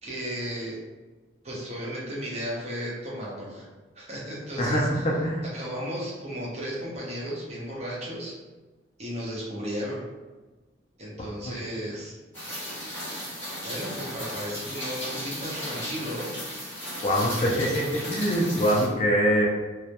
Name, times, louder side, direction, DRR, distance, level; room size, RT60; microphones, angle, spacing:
voice 1, 0.0-0.8 1.4-3.7 3.9-5.1 5.5-8.3 9.0-10.1 11.0-12.1 13.6-16.4, equal, 35° right, -5 dB, 0.6 m, -34 dB
voice 2, 4.6-5.4 11.2-11.3 17.0-19.5, equal, 30° left, -2 dB, 0.3 m, -24 dB
Rain, 12.3-18.9, equal, 10° left, 0.8 m, -35 dB
2.2 x 2.0 x 2.7 m, 1.2 s
head